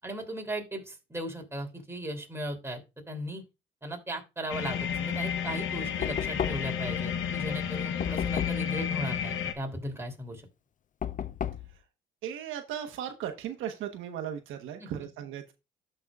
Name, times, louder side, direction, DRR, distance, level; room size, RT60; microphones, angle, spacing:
voice 1, 0.0-2.8 3.1-3.4 3.8-10.4 14.8-14.9, right 1 dB, 15° right, 3 dB, 2.9 m, -37 dB
sound 1, 4.5-9.5, left 8 dB, 85° left, 0.9 m, -31 dB
Knock, 6.0-6.9 8.0-8.7 11.0-11.7, left 8 dB, 40° left, 0.5 m, -33 dB
voice 2, 12.2-15.5, right 9 dB, 85° right, 5 dB, 1.1 m, -37 dB
13.5 x 5.5 x 2.4 m, 0.26 s
cardioid pair, 90°, 20 cm